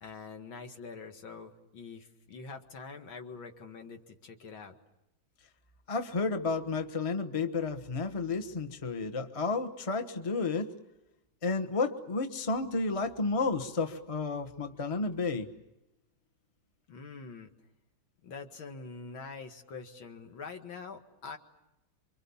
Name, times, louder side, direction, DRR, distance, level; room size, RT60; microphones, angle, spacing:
voice 1, 0.0-4.7 16.9-17.5 18.2-21.4, left 4 dB, 75° left, 5 dB, 2.7 m, -45 dB
voice 2, 5.9-10.7 11.4-15.5, left 3 dB, 20° left, 7 dB, 1.1 m, -31 dB
28.5 x 24.5 x 7.2 m, 0.94 s
omnidirectional pair, 2.2 m